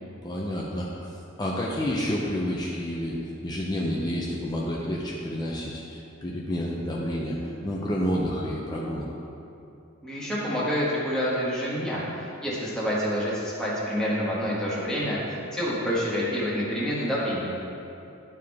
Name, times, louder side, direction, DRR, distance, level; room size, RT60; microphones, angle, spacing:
voice 1, 0.2-1.0 1.4-9.1, equal, 20° left, -4 dB, 0.6 m, -29 dB
voice 2, 10.0-15.2 15.5-17.5, equal, 5° left, -8 dB, 1.6 m, -27 dB
11.0 x 4.8 x 3.5 m, 2.8 s
head